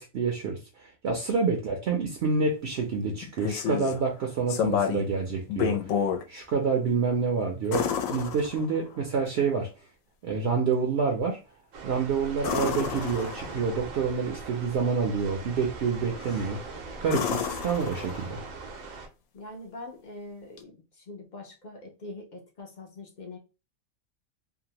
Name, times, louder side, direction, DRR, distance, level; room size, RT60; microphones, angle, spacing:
voice 1, 0.0-6.0 6.3-9.7 10.2-11.4 11.8-16.6 17.0-18.4, right 5 dB, 60° right, 0.7 m, -28 dB
sound 1, 3.2-4.0 4.5-5.1 5.5-6.2 7.7-9.0 12.4-13.7 16.2-16.6 17.1-18.5 20.6-20.7, left 8 dB, 75° left, 1.0 m, -30 dB
sound 2, 11.7-19.1, right 4 dB, 90° right, 1.1 m, -41 dB
voice 2, 19.3-23.4, left 2 dB, 50° left, 0.5 m, -43 dB
2.7 x 2.1 x 2.8 m
omnidirectional pair, 1.4 m